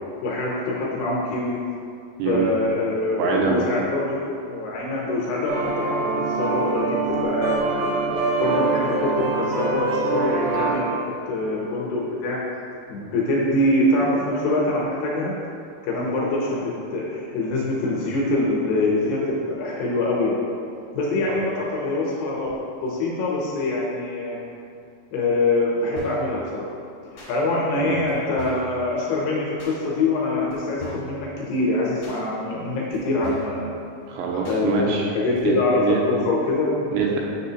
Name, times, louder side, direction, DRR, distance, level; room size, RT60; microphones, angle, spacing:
voice 1, 0.2-1.6 2.3-7.9 8.4-12.6 12.9-15.3 15.8-20.4 20.9-22.5 22.8-24.4 25.1-26.7 27.1-33.7 34.5-37.0, left 2 dB, 75° left, -4 dB, 2.7 m, -24 dB
voice 2, 2.2-2.5 3.2-3.6 8.0-8.4 21.3-21.4 27.8-28.0 34.1-35.1 35.4-36.0 36.9-37.2, right 5 dB, 85° right, -1 dB, 2.8 m, -24 dB
sound 1, 5.5-10.7, right 3 dB, 60° right, 2.3 m, -24 dB
sound 2, 26.0-26.3 27.2-27.3 28.1-28.2 28.4-28.7 29.6-29.8 30.5-30.6 30.8-31.2 32.0-32.2 32.9-33.0 33.2-33.6 34.4-34.6 35.3-35.4, equal, 55° left, 1.9 m, -39 dB
7.5 x 6.4 x 2.8 m, 2.4 s
omnidirectional pair, 5.3 m